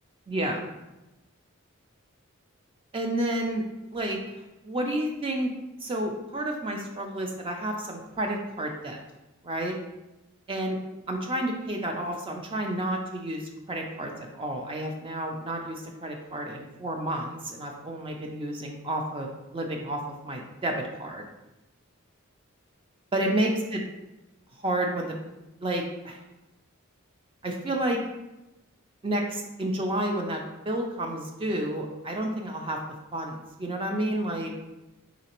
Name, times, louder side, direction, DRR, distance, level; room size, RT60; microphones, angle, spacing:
voice 1, 0.3-0.6 2.9-3.6 3.9-5.5 5.8-9.0 9.4-9.8 10.5-10.8 11.1-13.4 13.7-21.3 23.1-23.8 24.6-25.2 25.6-26.2 27.4-28.0 29.0-32.8 33.1-34.5, right 1 dB, 25° right, 2 dB, 0.4 m, -30 dB
3.8 x 3.2 x 2.9 m, 0.98 s
head